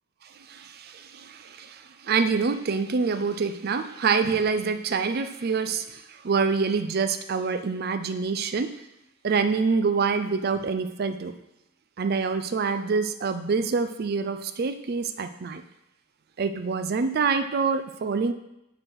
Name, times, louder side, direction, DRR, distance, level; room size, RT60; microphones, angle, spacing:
voice 1, 0.2-8.8 9.2-11.4 12.0-15.6 16.4-18.3, right 5 dB, 45° right, 9 dB, 0.4 m, -26 dB
6.3 x 6.3 x 4.5 m, 0.88 s
head